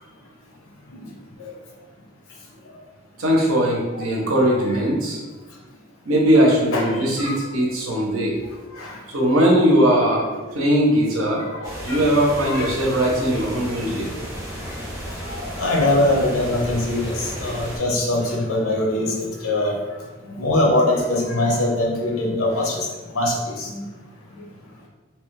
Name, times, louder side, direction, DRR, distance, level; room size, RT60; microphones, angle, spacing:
voice 1, 3.2-5.2 6.1-8.3 9.1-10.2 10.5-11.4 11.8-14.1, equal, 80° right, -2 dB, 0.8 m, -19 dB
voice 2, 6.7-7.4 8.8-9.0 11.3-12.2 12.5-12.7 15.3-19.7 20.4-22.9 23.1-23.8, left 1 dB, 85° left, -1 dB, 0.7 m, -22 dB
sound 1, 11.6-17.8, equal, 15° right, 0.8 m, -33 dB
2.9 x 2.3 x 3.1 m, 1.2 s
head